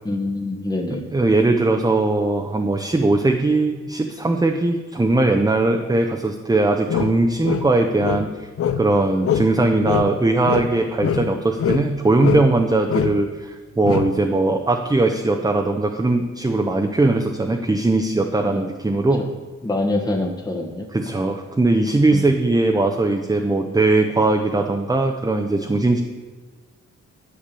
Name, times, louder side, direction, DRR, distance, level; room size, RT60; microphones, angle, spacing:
voice 1, 0.0-1.0 18.4-18.7 19.2-19.3 19.6-20.9 22.1-22.2, left 2 dB, 15° left, 1 dB, 1.0 m, -25 dB
voice 2, 0.9-8.5 8.8-19.2 20.9-26.0, right 2 dB, 15° right, 3 dB, 0.7 m, -20 dB
sound 1, 6.9-9.0 9.2-9.6 9.8-11.9 12.2-12.6 12.9-13.2 13.8-14.2, left 8 dB, 50° left, 0.6 m, -24 dB
10.0 x 7.3 x 6.8 m, 1.4 s
wide cardioid pair, 130°, 29 cm